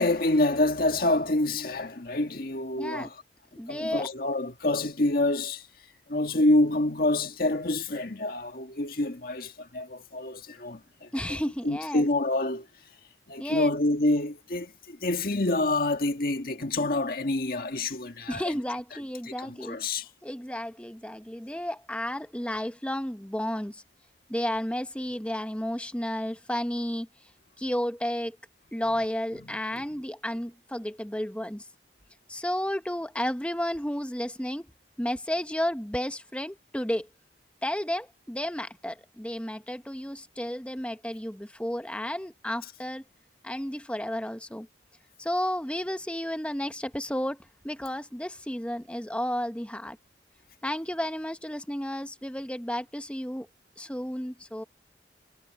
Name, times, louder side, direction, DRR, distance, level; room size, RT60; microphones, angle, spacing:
voice 1, 0.0-3.2 3.7-5.7 6.1-11.1 11.6-12.7 13.3-18.4 19.2-20.1, left 2 dB, 55° left, 1.8 m, -27 dB
voice 2, 2.8-3.1 3.6-4.1 11.1-12.1 13.4-13.7 18.3-19.8 20.2-23.8 24.3-27.1 27.6-28.4 28.7-31.7 32.3-34.7 35.0-37.1 37.6-43.0 43.4-44.7 45.2-50.0 50.6-53.5 53.8-54.6, equal, 5° left, 1.0 m, -32 dB
head